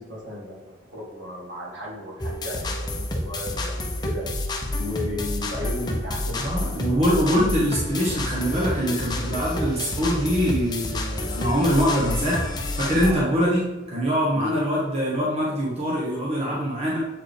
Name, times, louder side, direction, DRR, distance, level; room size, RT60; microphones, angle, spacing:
voice 1, 0.0-4.3 4.8-6.8 7.1-7.5 13.0-13.3 14.3-14.6, left 1 dB, 65° right, -3 dB, 2.1 m, -35 dB
sound 1, 2.2-13.1, left 1 dB, 20° left, 0.8 m, -29 dB
voice 2, 6.4-12.4 12.8-17.0, equal, 35° right, -5 dB, 1.2 m, -23 dB
7.5 x 4.7 x 3.5 m, 1.2 s
head